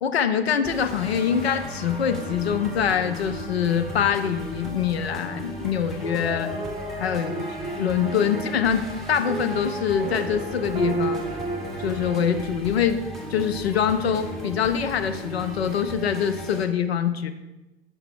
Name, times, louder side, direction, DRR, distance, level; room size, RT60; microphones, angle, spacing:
voice 1, 0.0-6.5 7.0-7.3 7.8-11.2 11.8-13.0 13.3-17.3, left 8 dB, 70° left, 9 dB, 0.5 m, -24 dB
sound 1, 0.6-16.6, left 1 dB, ahead, 0.7 m, -37 dB
sound 2, 1.0-12.3, right 2 dB, 20° right, 1.2 m, -35 dB
5.6 x 5.6 x 3.6 m, 1.0 s
figure-of-eight pair, 90°, 33 cm